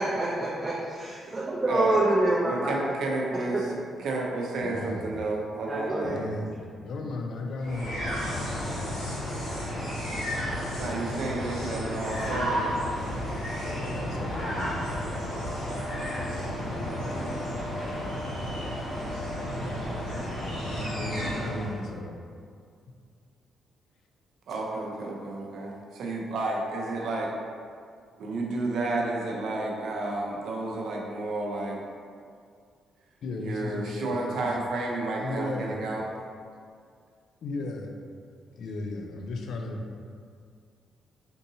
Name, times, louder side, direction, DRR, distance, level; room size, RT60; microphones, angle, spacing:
voice 1, 0.0-2.7 3.5-3.6 5.7-6.2 8.6-8.7, right 2 dB, 25° right, -7 dB, 0.5 m, -26 dB
voice 2, 1.7-2.0 2.4-3.7 4.0-6.1 10.8-12.7 24.5-27.3 28.2-31.8 33.4-36.0, right 2 dB, 75° right, -1 dB, 0.5 m, -31 dB
voice 3, 4.6-5.2 6.0-9.0 13.8-14.9 16.2-16.9 19.6-20.2 20.6-22.2 33.2-34.5 35.2-35.8 37.4-38.0 38.5-39.8, left 2 dB, 70° left, 3 dB, 0.4 m, -36 dB
sound 1, 7.6-21.8, equal, 85° left, 1.0 m, -32 dB
3.7 x 2.6 x 2.7 m, 2.2 s
supercardioid pair, 70°, 0 cm